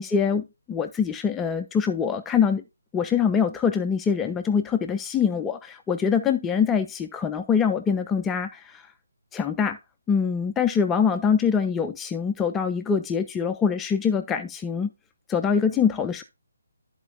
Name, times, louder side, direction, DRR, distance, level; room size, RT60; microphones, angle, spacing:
voice 1, 0.0-2.6 2.9-8.8 9.3-9.8 10.1-14.9 15.3-16.2, left 6 dB, 10° left, 0.4 m, -24 dB
12.5 x 4.3 x 2.5 m
figure-of-eight pair, 145°, 0 cm